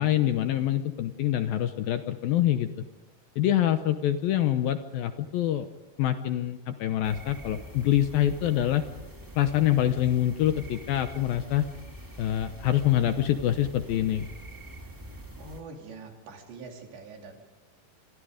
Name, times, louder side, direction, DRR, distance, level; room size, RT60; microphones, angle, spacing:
voice 1, 0.0-2.7 3.4-5.7 6.0-8.8 9.4-11.7 12.2-14.3, left 12 dB, 70° left, 9 dB, 2.4 m, -25 dB
sound 1, 7.0-15.6, right 1 dB, 25° right, 0.4 m, -44 dB
voice 2, 15.4-17.4, right 3 dB, 80° right, 2 dB, 5.4 m, -44 dB
27.0 x 22.5 x 5.1 m, 1.2 s
omnidirectional pair, 5.0 m